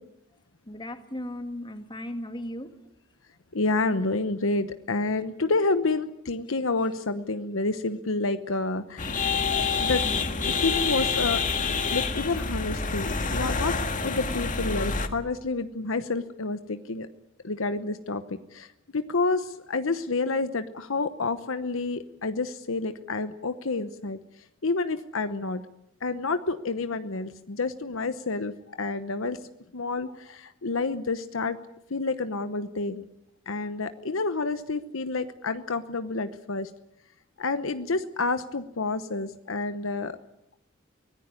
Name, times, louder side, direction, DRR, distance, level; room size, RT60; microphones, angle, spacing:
voice 1, 0.7-2.7, left 1 dB, 25° left, 7 dB, 2.2 m, -36 dB
voice 2, 3.5-10.1 10.4-11.4 11.9-13.7 14.0-17.1 17.4-18.7 18.9-24.2 24.6-25.6 26.0-29.4 29.7-31.6 31.9-33.0 33.5-36.7 37.4-40.2, left 3 dB, 65° left, 10 dB, 1.0 m, -29 dB
sound 1, 9.0-15.1, left 4 dB, 40° left, 1.8 m, -27 dB
24.0 x 18.0 x 9.7 m, 0.84 s
head